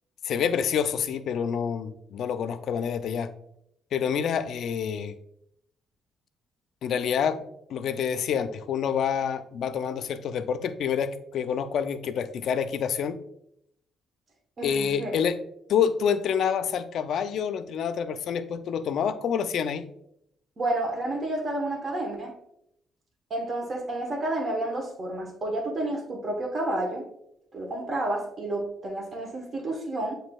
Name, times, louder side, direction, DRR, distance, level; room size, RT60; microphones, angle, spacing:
voice 1, 0.2-3.3 3.9-5.2 6.8-7.4 7.7-13.2 14.6-15.4 15.7-19.9, left 7 dB, 70° left, 11 dB, 0.3 m, -27 dB
voice 2, 14.6-15.1 20.6-22.3 23.3-27.0 27.5-30.1, right 1 dB, 40° right, 0 dB, 1.0 m, -30 dB
7.4 x 2.7 x 2.3 m, 0.76 s
cardioid pair, 90°, 0 cm